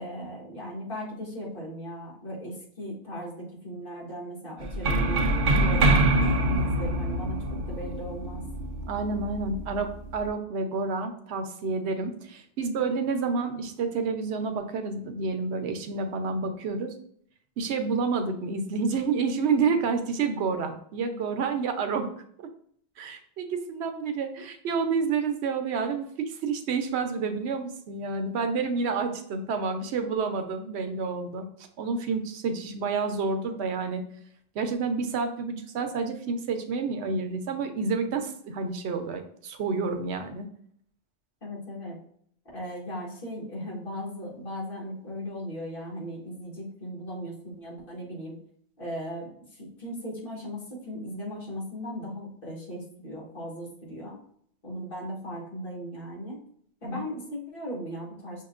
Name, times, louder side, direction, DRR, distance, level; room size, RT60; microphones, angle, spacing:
voice 1, 0.0-5.2 5.5-8.4 41.4-42.0 42.5-48.4 48.8-54.2 54.6-56.4 56.8-58.4, equal, 55° left, -4 dB, 1.7 m, -37 dB
sound 1, 4.6-10.3, right 1 dB, 60° right, 0.7 m, -25 dB
voice 2, 8.9-16.9 17.6-22.1 23.0-31.5 31.8-34.0 34.5-40.5 56.8-57.0, right 4 dB, 90° right, 7 dB, 0.9 m, -29 dB
5.9 x 2.8 x 2.4 m, 0.64 s
omnidirectional pair, 1.1 m